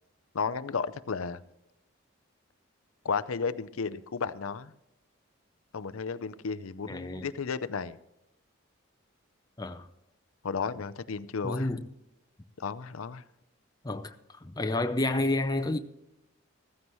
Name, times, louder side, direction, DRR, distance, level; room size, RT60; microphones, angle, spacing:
voice 1, 0.3-1.4 3.0-4.7 5.7-8.0 10.4-11.7 12.6-13.2, left 5 dB, 80° left, 0.6 m, -33 dB
voice 2, 6.9-7.3 9.6-9.9 11.4-11.8 13.8-14.1 14.4-15.8, left 2 dB, 20° left, 0.6 m, -30 dB
15.0 x 14.5 x 3.1 m
head